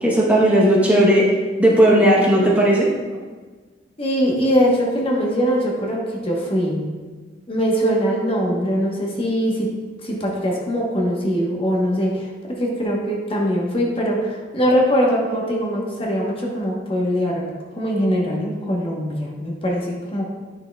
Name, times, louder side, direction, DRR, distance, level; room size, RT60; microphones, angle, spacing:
voice 1, 0.0-1.2 1.6-2.9, right 1 dB, 10° right, -5 dB, 1.0 m, -15 dB
voice 2, 4.0-6.8 7.5-9.7 10.0-12.3 12.6-17.5 17.7-20.2, equal, 30° left, -3 dB, 1.1 m, -22 dB
9.5 x 6.2 x 2.3 m, 1.4 s
head